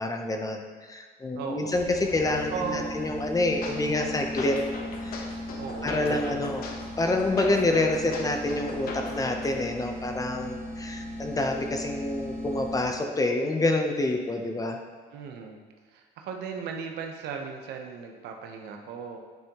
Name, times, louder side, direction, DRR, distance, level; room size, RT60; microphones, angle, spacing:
voice 1, 0.0-4.6 5.0-5.2 5.8-6.6 7.0-14.8, left 2 dB, 20° left, 4 dB, 0.7 m, -27 dB
voice 2, 1.4-1.7 2.5-3.0 5.6-6.7 15.1-15.6 15.9-19.2, right 6 dB, 80° right, 3 dB, 0.9 m, -36 dB
sound 1, 1.7-13.1, left 1 dB, 35° right, 1.3 m, -38 dB
sound 2, 3.6-9.6, left 3 dB, 60° left, 1.0 m, -39 dB
9.4 x 5.3 x 3.0 m, 1.5 s
cardioid pair, 110°, 17 cm